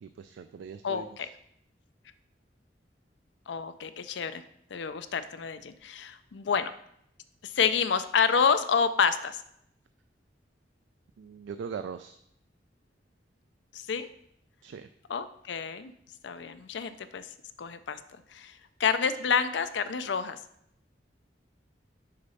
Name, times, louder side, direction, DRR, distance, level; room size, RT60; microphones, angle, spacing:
voice 1, 0.0-1.3 11.2-12.2 14.6-14.9, right 6 dB, 90° right, 10 dB, 0.3 m, -41 dB
voice 2, 0.8-1.3 3.5-4.4 4.7-6.7 7.4-9.4 13.7-14.1 15.1-15.9 16.2-17.3 17.6-18.0 18.3-18.5 18.8-20.4, left 6 dB, 75° left, 11 dB, 0.5 m, -28 dB
6.6 x 4.1 x 5.5 m, 0.73 s
head